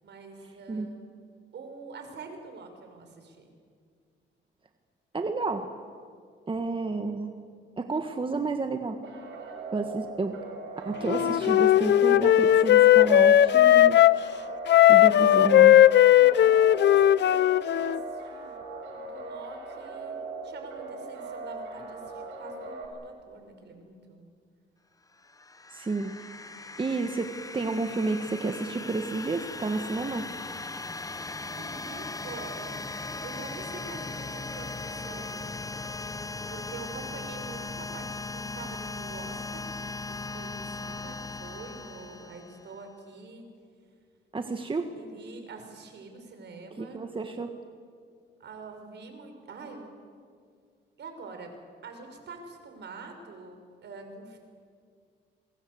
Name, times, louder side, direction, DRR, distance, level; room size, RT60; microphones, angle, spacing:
voice 1, 0.0-1.0 1.5-3.5 16.1-18.5 18.9-20.2 20.4-24.3 31.4-35.5 36.5-39.6 40.1-43.5 44.9-47.0 48.4-49.9 51.0-51.5 51.8-54.4, right 4 dB, 60° right, 5 dB, 5.6 m, -45 dB
voice 2, 5.1-5.7 6.5-7.3 7.8-9.0 9.7-10.4 10.8-14.0 14.9-15.8 25.7-26.1 26.8-30.2 44.3-44.9 46.8-47.5, right 3 dB, 25° right, 6 dB, 1.7 m, -30 dB
sound 1, 9.0-22.9, right 3 dB, 75° right, 6.5 m, -39 dB
Wind instrument woodwind instrument, 11.0-14.2 14.7-18.0, left 12 dB, 60° left, 0.7 m, -18 dB
sound 2, 25.2-42.8, left 3 dB, 15° left, 1.0 m, -38 dB
27.5 x 23.5 x 8.0 m, 2.1 s
cardioid pair, 90°, 20 cm